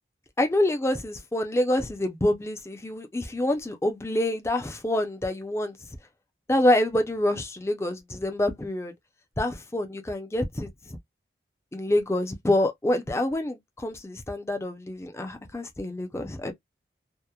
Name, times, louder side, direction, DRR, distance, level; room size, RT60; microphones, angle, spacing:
voice 1, 0.4-5.8 6.5-8.9 9.4-11.0 11.7-16.5, left 1 dB, 15° left, 0.4 m, -26 dB
2.8 x 2.0 x 2.2 m
head